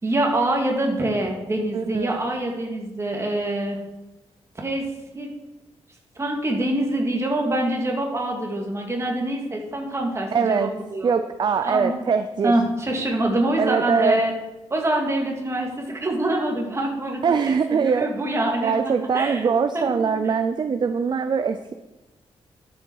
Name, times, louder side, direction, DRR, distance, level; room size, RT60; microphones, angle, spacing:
voice 1, 0.0-3.8 4.6-4.9 5.1-5.3 6.2-11.1 11.6-11.9 12.4-14.3 14.7-18.7 19.1-19.4 19.7-20.2, right 1 dB, 25° right, 0 dB, 2.2 m, -25 dB
voice 2, 1.7-2.2 10.3-10.7 11.0-12.5 13.6-14.2 17.2-18.1 18.6-21.7, right 6 dB, 45° right, 9 dB, 0.5 m, -22 dB
11.5 x 7.0 x 4.7 m, 1.0 s
wide cardioid pair, 120°, 11 cm